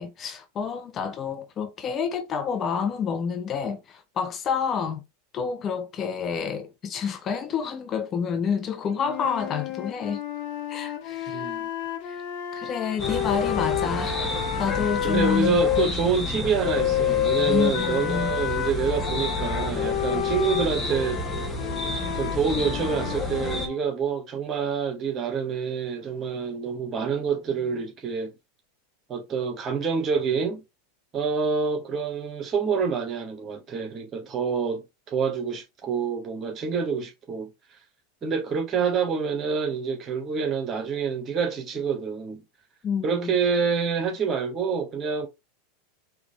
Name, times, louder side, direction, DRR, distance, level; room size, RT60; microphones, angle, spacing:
voice 1, 0.0-5.0 5.3-10.2 10.7-11.5 12.0-12.2 12.5-14.3 14.6-16.1 17.5-18.3 42.8-43.4, left 6 dB, 35° left, 0.8 m, -29 dB
sound 1, 9.0-15.9 16.6-23.8, left 11 dB, 60° left, 1.1 m, -29 dB
voice 2, 11.3-11.7 15.0-21.2 22.1-28.3 29.1-30.6 31.1-37.5 38.2-42.4 43.0-45.3, right 6 dB, 30° right, 1.8 m, -27 dB
sound 2, 13.0-23.7, left 2 dB, 20° left, 1.6 m, -31 dB
4.8 x 3.2 x 3.4 m
hypercardioid pair, 90°, 0 cm